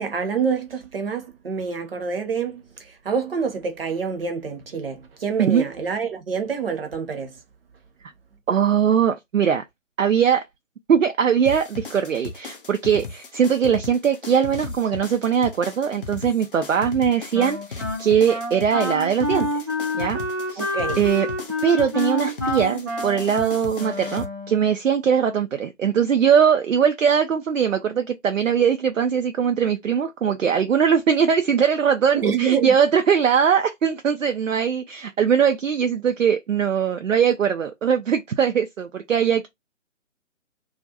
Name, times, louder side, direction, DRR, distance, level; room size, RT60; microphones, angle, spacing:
voice 1, 0.0-7.3 20.6-21.0 32.1-32.7, right 6 dB, 45° right, 0.8 m, -26 dB
voice 2, 8.5-9.6 10.0-10.4 10.9-19.7 19.9-20.2 20.5-20.7 21.0-21.3 21.6-39.5, right 7 dB, 75° right, 0.5 m, -21 dB
sound 1, 11.5-24.3, left 4 dB, 45° left, 0.6 m, -36 dB
Wind instrument woodwind instrument, 17.3-24.7, left 1 dB, 15° right, 0.5 m, -28 dB
2.4 x 2.2 x 2.7 m
figure-of-eight pair, 140°, 39 cm